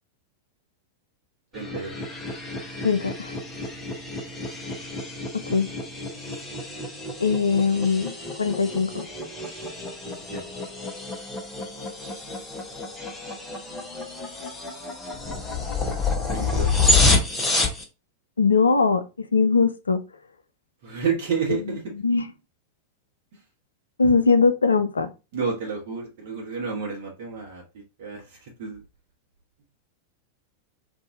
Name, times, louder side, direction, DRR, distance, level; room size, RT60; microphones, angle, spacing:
sound 1, 1.5-17.8, left 3 dB, 15° left, 0.9 m, -28 dB
voice 1, 1.5-2.0 10.0-10.4 16.3-16.8 20.8-21.9 25.3-28.8, right 5 dB, 50° right, 1.1 m, -30 dB
voice 2, 2.8-3.3 5.3-5.7 7.2-9.1 18.4-20.0 22.0-22.3 24.0-25.1, left 4 dB, 75° left, 0.4 m, -21 dB
2.6 x 2.6 x 3.6 m
figure-of-eight pair, 90°, 0 cm